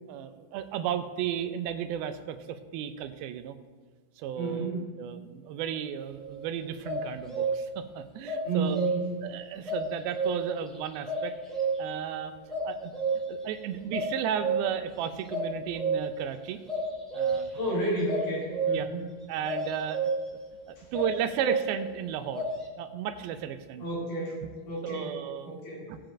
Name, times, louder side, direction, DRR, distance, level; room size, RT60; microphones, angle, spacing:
voice 1, 0.1-3.6 4.2-8.8 9.2-11.4 11.8-12.3 12.6-12.9 13.3-16.6 17.1-17.5 18.7-18.9 19.3-20.1 20.7-22.5 22.8-23.8 24.8-25.5 25.9-26.0, right 9 dB, 90° right, 9 dB, 2.5 m, -34 dB
voice 2, 4.3-4.8 8.4-9.2 17.6-19.0 20.8-20.9 23.8-25.2 25.4-25.9, right 2 dB, 55° left, -6 dB, 5.0 m, -32 dB
sound 1, 6.1-6.4 6.8-7.8 8.2-9.2 9.6-10.6 11.0-12.0 12.5-13.4 13.9-14.8 15.3-16.2 16.7-17.6 18.1-19.0 19.4-20.3 20.9-21.9 22.3-22.5, right 4 dB, ahead, 2.1 m, -30 dB
20.0 x 7.6 x 2.5 m, 1.4 s
omnidirectional pair, 4.2 m